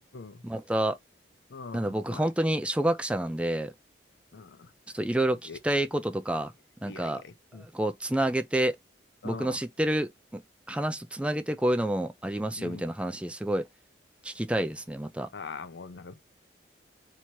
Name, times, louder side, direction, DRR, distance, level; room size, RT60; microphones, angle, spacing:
voice 1, 0.4-1.0 1.7-3.7 4.9-6.5 6.8-7.2 7.7-8.7 9.2-10.4 10.7-13.6 14.2-15.3, right 1 dB, 5° right, 0.3 m, -28 dB
voice 2, 1.5-2.3 4.3-4.7 5.5-5.6 6.8-7.6 9.2-9.6 12.6-12.9 15.3-16.2, left 4 dB, 70° left, 0.5 m, -42 dB
3.0 x 2.8 x 4.5 m
head